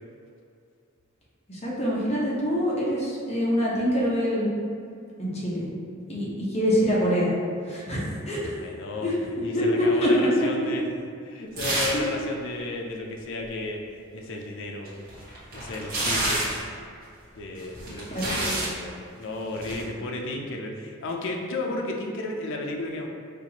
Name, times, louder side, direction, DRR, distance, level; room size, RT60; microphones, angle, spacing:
voice 1, 1.5-4.5 5.2-5.6 6.1-7.3 7.6-8.6 9.0-9.1 9.5-10.1 18.1-18.4, equal, 30° left, -6 dB, 0.9 m, -25 dB
voice 2, 8.6-9.1 9.4-10.8 11.2-13.8 14.1-14.9 15.5-16.5 17.3-23.1, left 2 dB, 65° left, 1 dB, 0.5 m, -33 dB
sound 1, 11.6-12.1 12.4-12.5 14.8-16.7 17.6-18.7 19.5-19.8, right 1 dB, 45° right, 1.1 m, -28 dB
4.5 x 2.5 x 2.9 m, 2.4 s
head